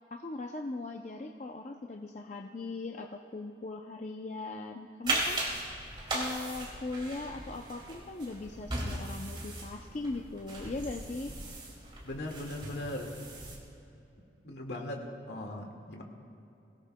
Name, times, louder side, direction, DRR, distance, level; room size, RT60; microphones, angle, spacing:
voice 1, 0.1-5.4 6.1-11.3, left 2 dB, 40° left, 2 dB, 0.5 m, -39 dB
sound 1, 5.1-13.6, right 1 dB, 25° right, 2.4 m, -38 dB
voice 2, 12.0-13.1 14.4-16.0, left 1 dB, 70° left, 1 dB, 1.9 m, -39 dB
23.5 x 17.0 x 2.2 m, 2.8 s
head